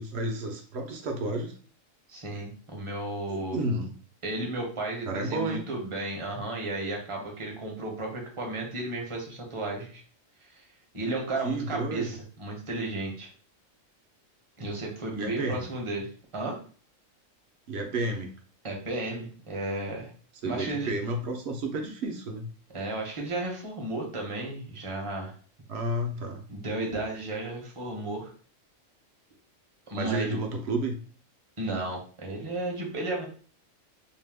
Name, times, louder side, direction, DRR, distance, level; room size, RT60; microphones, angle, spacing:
voice 1, 0.0-1.5 3.3-3.9 5.1-5.6 11.4-12.1 15.1-15.6 17.7-18.3 20.4-22.5 25.7-26.4 29.9-31.0, right 2 dB, 65° right, 3 dB, 0.7 m, -31 dB
voice 2, 2.1-3.6 4.2-10.0 10.4-10.7 10.9-13.3 14.6-16.1 16.3-16.6 18.6-20.1 20.4-20.9 22.7-25.3 26.5-28.3 29.9-30.4 31.6-33.3, right 2 dB, 30° right, -1 dB, 0.6 m, -33 dB
2.7 x 2.1 x 3.3 m, 0.41 s
omnidirectional pair, 1.4 m